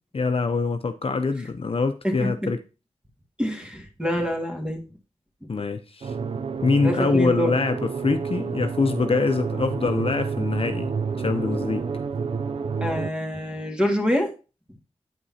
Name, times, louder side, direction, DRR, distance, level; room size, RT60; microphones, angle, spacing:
voice 1, 0.1-2.6 5.5-6.1 6.6-10.9 11.2-11.9, left 4 dB, 55° left, 0.7 m, -24 dB
voice 2, 2.0-2.5 3.4-4.8 6.8-7.5 12.8-14.3, equal, 10° right, 2.0 m, -26 dB
sound 1, 6.0-13.1, right 5 dB, 55° right, 0.4 m, -29 dB
8.9 x 5.4 x 2.8 m
wide cardioid pair, 60°, 12 cm